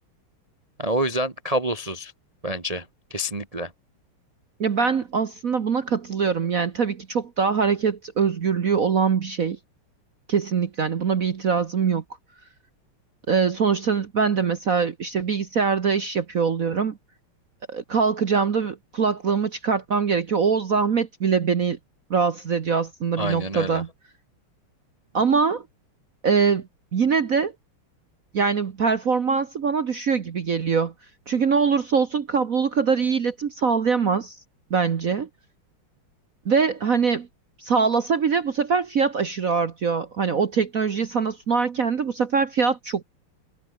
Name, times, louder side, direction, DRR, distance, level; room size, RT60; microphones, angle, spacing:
voice 1, 0.8-2.1 2.4-2.8 3.1-3.7 23.2-23.8, equal, 20° right, 1.0 m, -27 dB
voice 2, 4.6-9.6 10.3-12.0 13.3-17.0 17.7-21.8 22.1-23.9 25.1-25.6 26.2-27.5 28.3-30.9 31.3-34.4 34.7-35.3 36.4-37.3 37.6-43.0, right 5 dB, 45° right, 1.3 m, -23 dB
omnidirectional pair, 2.4 m